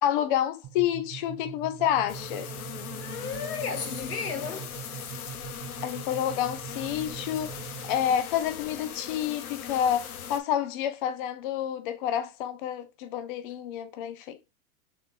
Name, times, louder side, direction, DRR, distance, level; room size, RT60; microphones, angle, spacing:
voice 1, 0.0-2.5 5.8-7.5 7.8-14.5, left 10 dB, 40° left, 0.4 m, -29 dB
sound 1, 0.6-8.2, right 12 dB, 40° right, 1.1 m, -43 dB
sound 2, 2.1-10.4, left 8 dB, 70° left, 0.9 m, -39 dB
voice 2, 3.0-4.8, left 6 dB, 90° left, 1.5 m, -34 dB
3.8 x 3.1 x 3.2 m
hypercardioid pair, 130°, 44 cm